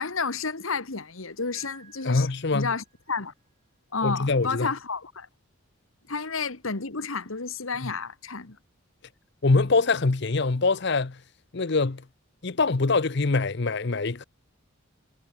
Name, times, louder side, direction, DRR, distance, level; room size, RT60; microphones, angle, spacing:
voice 1, 0.0-3.3 3.9-5.3 6.1-8.6, left 4 dB, 80° left, 1.8 m, -31 dB
Piano, 1.5-3.5, right 7 dB, 35° right, 5.2 m, -56 dB
voice 2, 2.0-2.7 4.0-4.7 7.8-7.9 9.4-11.2 11.5-12.0 12.4-14.2, left 3 dB, 55° left, 0.8 m, -24 dB
head